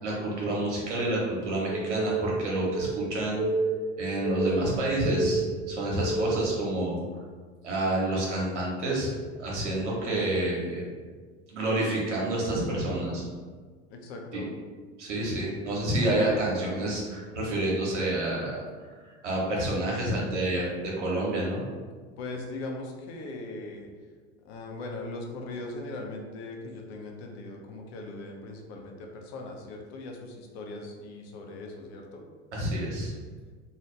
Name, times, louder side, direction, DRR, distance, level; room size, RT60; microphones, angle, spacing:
voice 1, 0.0-3.5 4.0-7.0 7.6-9.1 9.4-10.8 11.5-13.2 14.3-14.4 15.0-18.6 19.2-21.6 32.5-33.1, right 1 dB, 85° right, -4 dB, 1.1 m, -28 dB
sound 1, 1.7-6.5, right 2 dB, 35° right, 0.5 m, -30 dB
voice 2, 13.9-14.5 22.2-23.9 24.4-32.2, left 2 dB, 60° left, 1 dB, 0.7 m, -39 dB
2.8 x 2.3 x 3.1 m, 1.5 s
hypercardioid pair, 95°, 35 cm